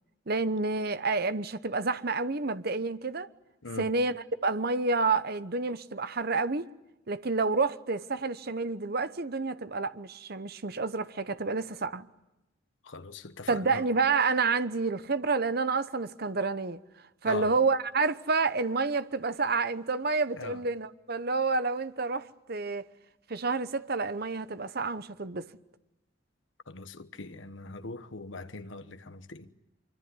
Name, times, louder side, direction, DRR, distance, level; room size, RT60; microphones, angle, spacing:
voice 1, 0.3-3.3 3.8-6.7 7.1-12.1 13.5-16.8 17.2-22.9 23.3-25.5, right 4 dB, 50° right, 1.0 m, -29 dB
voice 2, 12.9-13.8 17.2-17.5 20.4-20.6 26.7-29.5, left 3 dB, 75° left, 1.2 m, -41 dB
25.0 x 24.5 x 9.7 m
head